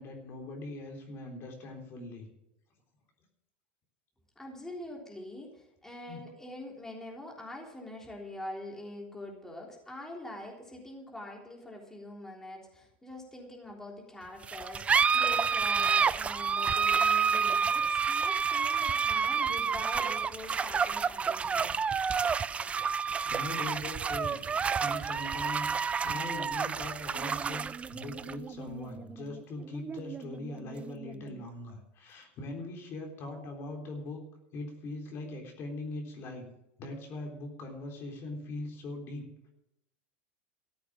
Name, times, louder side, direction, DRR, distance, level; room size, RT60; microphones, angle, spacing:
voice 1, 0.0-2.3 6.1-6.2 23.2-24.4 24.8-25.7 26.0-34.2 34.5-36.5 36.8-39.3, left 2 dB, 45° left, 1 dB, 3.8 m, -41 dB
voice 2, 4.4-21.8, left 1 dB, 10° left, -1 dB, 3.5 m, -44 dB
sound 1, 14.4-31.4, right 6 dB, 20° right, 0.5 m, -29 dB
14.0 x 8.3 x 7.5 m, 0.86 s
supercardioid pair, 110°, 6 cm